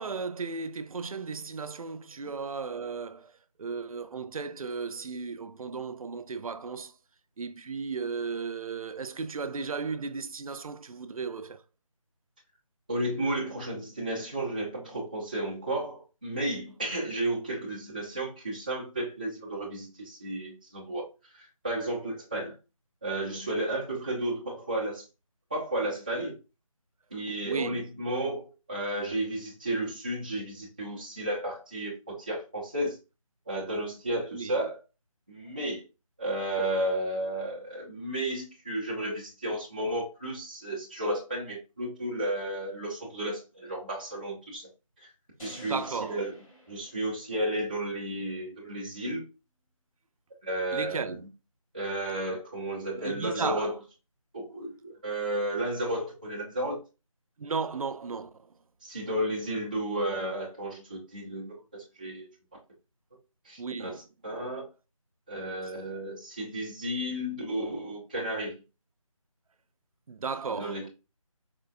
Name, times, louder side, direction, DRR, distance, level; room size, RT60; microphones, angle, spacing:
voice 1, 0.0-3.3 3.6-6.9 7.4-11.6 27.4-27.8 34.3-34.6 45.6-46.2 50.7-51.2 53.0-53.7 57.4-58.5 63.6-64.0 70.1-70.8, right 5 dB, 80° right, 0.4 m, -35 dB
voice 2, 12.9-21.1 21.3-22.5 23.0-25.0 25.5-26.3 27.1-33.0 33.5-34.8 35.3-35.8 36.2-44.7 45.0-45.1 45.4-46.3 46.7-49.2 50.4-51.1 51.7-53.7 54.3-56.8 58.8-62.3 63.4-64.0 64.2-64.7 65.3-68.5 70.5-70.9, right 1 dB, 15° right, 0.4 m, -33 dB
sound 1, 45.4-47.7, equal, 80° left, 1.8 m, -51 dB
4.3 x 2.2 x 2.3 m
figure-of-eight pair, 165°, 18 cm